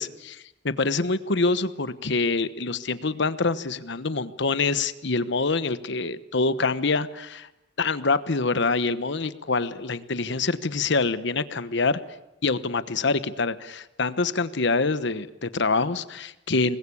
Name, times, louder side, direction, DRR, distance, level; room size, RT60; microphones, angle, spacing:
voice 1, 0.0-7.5 7.8-12.0 12.4-16.8, left 3 dB, 65° left, 13 dB, 1.1 m, -25 dB
25.5 x 20.5 x 8.5 m, 0.91 s
head